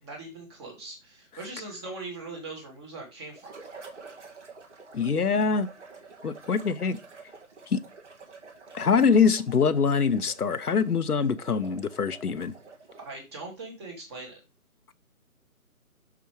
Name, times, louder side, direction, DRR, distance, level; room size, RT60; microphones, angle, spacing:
voice 1, 0.0-3.5 13.0-14.4, right 3 dB, 20° right, 2.0 m, -40 dB
sound 1, 3.3-13.2, right 4 dB, 50° right, 2.2 m, -48 dB
voice 2, 4.9-5.7 6.2-7.0 7.7-7.8 8.7-12.5, left 5 dB, 85° left, 0.9 m, -24 dB
6.2 x 5.9 x 4.6 m
figure-of-eight pair, 160°, 44 cm